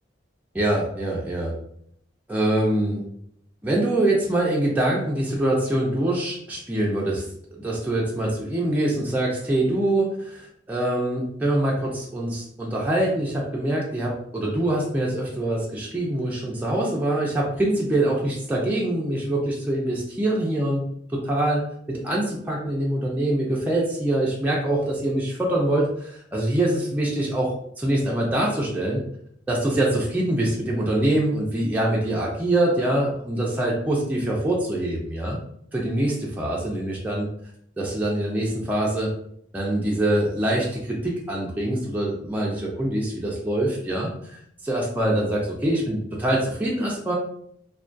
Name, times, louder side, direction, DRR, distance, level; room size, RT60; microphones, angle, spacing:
voice 1, 0.5-1.5 2.3-3.0 3.6-7.2 7.5-20.8 21.1-21.6 21.9-29.0 29.5-35.4 35.7-37.3 37.8-39.1 39.5-47.2, right 1 dB, 10° right, -4 dB, 0.3 m, -24 dB
2.2 x 2.2 x 2.5 m, 0.69 s
head